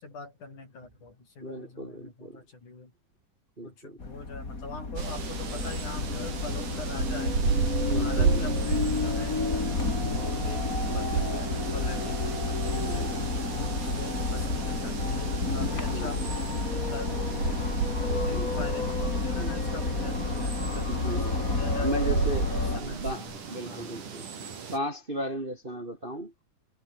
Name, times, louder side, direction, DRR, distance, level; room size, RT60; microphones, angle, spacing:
voice 1, 0.0-2.9 3.6-7.3 7.9-9.4 10.1-10.7 10.9-13.1 13.6-16.2 16.7-17.5 18.0-21.9 22.5-23.9, left 3 dB, 65° left, 9.0 m, -42 dB
voice 2, 1.4-2.4 3.6-4.0 7.8-8.5 12.7-13.2 15.9-16.2 18.3-18.5 19.3-19.7 20.9-21.4 21.7-24.3 24.7-26.3, right 1 dB, 20° right, 2.0 m, -36 dB
sound 1, 4.0-22.8, left 3 dB, 25° left, 3.8 m, -30 dB
sound 2, 5.0-24.8, right 6 dB, 70° right, 5.4 m, -33 dB
omnidirectional pair, 3.8 m